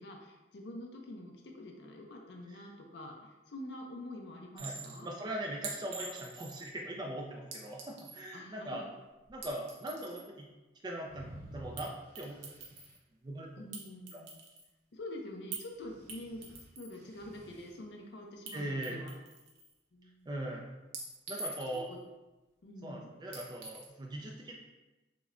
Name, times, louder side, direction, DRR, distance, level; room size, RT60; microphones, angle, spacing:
voice 1, 0.0-5.1 8.3-8.9 13.6-14.4 14.9-16.5 16.8-19.1 19.9-20.3 21.7-22.0 22.6-23.1, left 1 dB, 65° left, 1 dB, 0.5 m, -46 dB
Chink clink, 4.6-5.0 5.6-6.7 7.5-8.3 9.3-10.3 11.8-11.9 12.2-13.0 13.7-14.7 15.5-15.7 16.1-17.0 18.5-18.6 18.8-19.7 20.9-21.9 23.3-23.9, right 4 dB, 80° right, 0.7 m, -45 dB
voice 2, 5.0-8.8 9.3-10.5 10.8-12.4 13.2-13.5 14.1-14.2 18.5-19.0 20.3-20.6 21.3-21.9 22.8-24.6, right 1 dB, 25° right, -1 dB, 0.3 m, -40 dB
sound 1, 11.1-12.9 15.7-17.8, right 1 dB, 40° right, 0.8 m, -52 dB
5.9 x 2.1 x 2.5 m, 1.1 s
head